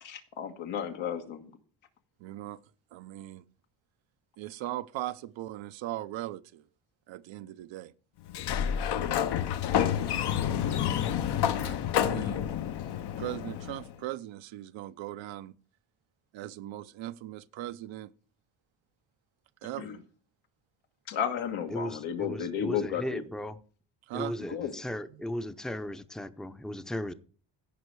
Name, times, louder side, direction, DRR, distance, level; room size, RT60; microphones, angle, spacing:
voice 1, 0.0-1.5 19.8-20.0 21.1-23.2 24.5-24.7, left 8 dB, 85° left, 1.7 m, -33 dB
voice 2, 2.2-2.6 2.9-3.4 4.4-6.6 7.1-7.9 11.6-12.5 13.2-15.5 16.3-18.1 19.6-20.0 24.1-24.4 25.1-25.2, right 14 dB, 85° right, 0.7 m, -39 dB
Sliding door, 8.3-13.9, left 9 dB, 60° left, 0.8 m, -29 dB
voice 3, 21.7-23.6 24.1-27.1, left 1 dB, ahead, 0.6 m, -36 dB
16.0 x 5.4 x 4.7 m
cardioid pair, 105°, 45 cm